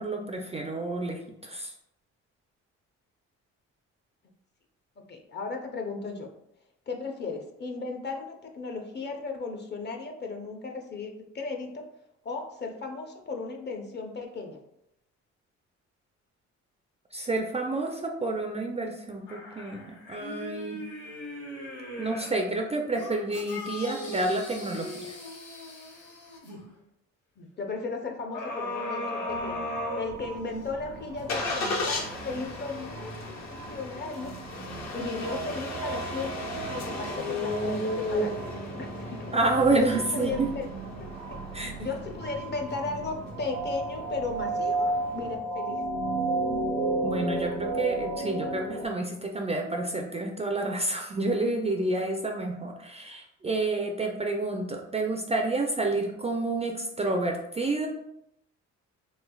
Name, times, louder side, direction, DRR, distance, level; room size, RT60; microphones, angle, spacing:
voice 1, 0.0-1.7 17.1-20.8 22.0-25.1 39.3-40.5 41.5-41.7 47.0-57.9, right 2 dB, 20° right, 2 dB, 0.3 m, -29 dB
voice 2, 5.0-6.3 6.9-11.9 12.2-14.6 27.4-29.6 30.0-34.3 34.9-39.3 39.7-40.7 41.0-41.1 41.8-45.8, left 4 dB, 35° left, 3 dB, 0.6 m, -36 dB
sound 1, 19.3-22.4 22.9-26.6 28.3-30.7 31.2-31.3, left 1 dB, 85° left, 1.1 m, -38 dB
sound 2, 29.3-48.9, right 2 dB, 70° right, 0.6 m, -34 dB
Engine starting, 30.1-45.4, left 2 dB, 60° left, 0.8 m, -36 dB
3.2 x 3.2 x 2.2 m, 0.79 s
cardioid pair, 90°, 30 cm